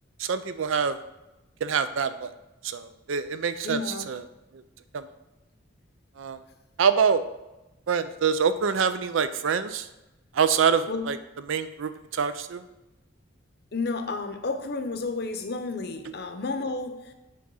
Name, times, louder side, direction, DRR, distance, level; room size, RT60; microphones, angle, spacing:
voice 1, 0.2-1.0 1.6-2.3 2.6-3.8 4.1-4.2 4.9-5.0 6.2-6.4 6.8-7.2 7.9-9.9 10.3-11.2 11.5-12.6, right 6 dB, 85° right, 12 dB, 0.5 m, -25 dB
voice 2, 3.6-4.1 10.9-11.1 13.7-17.1, left 3 dB, 55° left, 7 dB, 0.7 m, -31 dB
7.6 x 3.5 x 5.5 m, 0.98 s
head